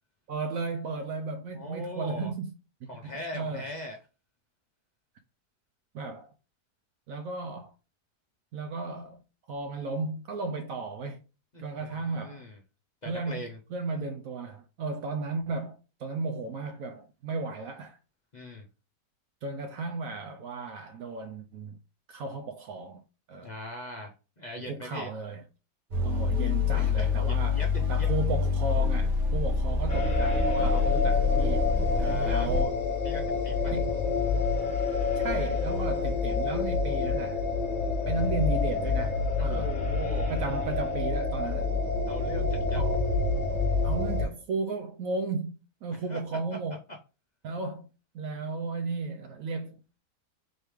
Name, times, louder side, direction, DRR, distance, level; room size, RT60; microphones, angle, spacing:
voice 1, 0.3-2.5 2.8-2.9 3.3-3.7 5.9-6.3 7.1-7.7 8.5-9.2 9.5-11.2 11.6-12.4 13.1-13.4 13.7-18.0 19.4-21.8 22.1-23.0 23.3-23.5 24.6-25.4 26.0-27.6 27.9-31.7 32.2-32.8 33.7-34.0 35.2-37.4 38.1-39.8 40.3-41.7 42.7-43.0 43.8-46.8 47.4-47.9 48.1-49.8, right 3 dB, 70° right, 0.8 m, -34 dB
voice 2, 1.5-2.3 2.9-4.0 11.5-12.6 13.0-13.6 18.3-18.7 23.4-25.1 26.7-28.1 32.0-32.5 33.0-33.8 39.4-40.3 42.1-42.8 45.9-46.2, left 1 dB, 55° left, 0.4 m, -40 dB
sound 1, 25.9-32.6, left 5 dB, 85° right, 2.0 m, -26 dB
sound 2, 29.9-44.2, left 4 dB, 30° left, 1.2 m, -28 dB
4.4 x 3.1 x 3.4 m
omnidirectional pair, 1.8 m